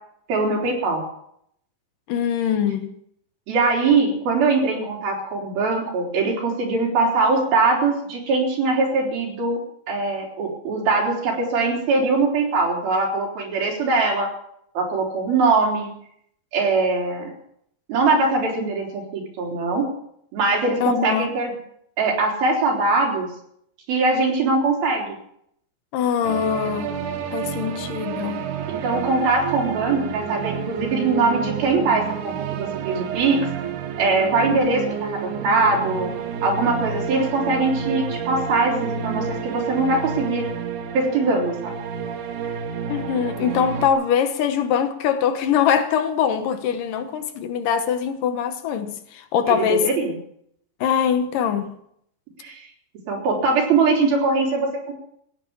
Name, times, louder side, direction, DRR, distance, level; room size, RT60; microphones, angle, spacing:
voice 1, 0.3-1.0 3.5-9.6 9.9-14.3 14.8-15.9 16.5-17.3 17.9-19.9 20.3-21.5 22.0-23.3 23.9-25.2 27.6-27.7 28.7-33.5 34.0-34.8 35.2-36.1 36.4-40.4 40.9-41.8 49.5-50.2 52.4-52.7 53.1-54.9, right 3 dB, 90° right, 5.6 m, -22 dB
voice 2, 2.1-2.9 20.8-21.3 25.9-27.0 27.3-28.5 42.9-49.9 50.8-51.7, left 8 dB, 70° left, 2.6 m, -22 dB
sound 1, 26.2-43.9, right 7 dB, 65° right, 2.5 m, -30 dB
16.5 x 9.6 x 7.0 m
omnidirectional pair, 4.1 m